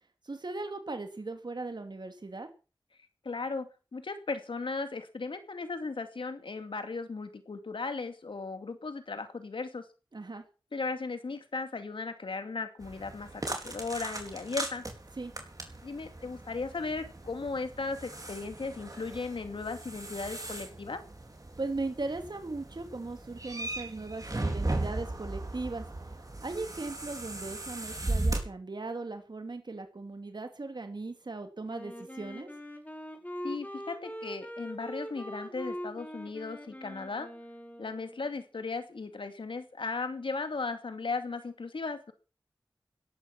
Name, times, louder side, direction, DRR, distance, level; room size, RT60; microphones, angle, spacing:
voice 1, 0.2-2.5 10.1-10.4 15.2-15.3 21.6-25.8 26.4-32.5, right 3 dB, 60° right, 6 dB, 2.6 m, -38 dB
voice 2, 3.2-9.8 10.7-14.9 15.8-21.0 33.4-37.3 37.8-42.1, left 4 dB, 90° left, 8 dB, 2.5 m, -36 dB
sound 1, 12.8-28.4, right 2 dB, 45° right, 4.3 m, -37 dB
Wind instrument woodwind instrument, 31.7-38.3, equal, 20° left, 4.9 m, -42 dB
16.5 x 12.5 x 6.0 m, 0.35 s
wide cardioid pair, 55°, 8 cm